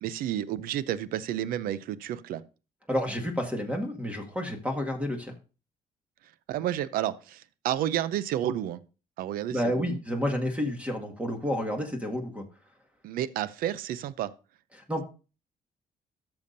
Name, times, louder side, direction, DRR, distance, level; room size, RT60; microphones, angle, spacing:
voice 1, 0.0-2.4 6.5-8.8 9.2-10.0 13.0-14.3, right 11 dB, 85° right, 17 dB, 0.5 m, -31 dB
voice 2, 2.9-5.3 9.5-12.5 14.7-15.0, left 1 dB, 10° right, 2 dB, 1.9 m, -30 dB
13.0 x 6.9 x 2.6 m, 0.34 s
cardioid pair, 75°, 15 cm